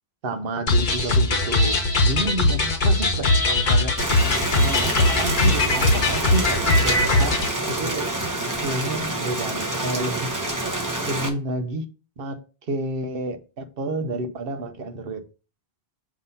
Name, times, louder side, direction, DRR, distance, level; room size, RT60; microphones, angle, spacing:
voice 1, 0.2-3.9 4.5-7.4 7.7-8.1 8.6-10.3 11.0-11.8 12.2-15.2, right 2 dB, 65° right, 1.0 m, -30 dB
sound 1, 0.7-7.5, left 2 dB, 50° left, 1.0 m, -20 dB
Rain, 4.0-11.3, right 2 dB, 20° right, 0.8 m, -27 dB
7.2 x 2.8 x 5.4 m
omnidirectional pair, 1.1 m